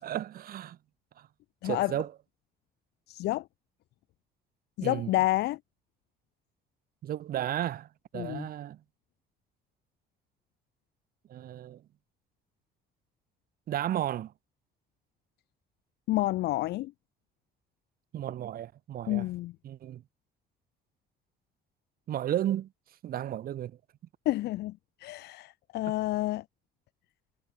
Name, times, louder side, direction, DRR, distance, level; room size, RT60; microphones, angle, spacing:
voice 1, 0.0-0.8 1.2-1.3 1.6-2.1 4.8-5.1 7.0-7.9 8.1-8.8 11.3-11.8 13.7-14.3 18.1-19.3 19.6-20.0 22.1-22.7 23.0-23.8, right 11 dB, 60° right, 2.7 m, -33 dB
voice 2, 1.6-1.9 3.1-3.4 4.8-5.6 8.1-8.5 16.1-16.9 19.1-19.5 24.3-24.7 25.0-26.4, left 17 dB, 80° left, 2.0 m, -29 dB
cardioid pair, 110°, 17 cm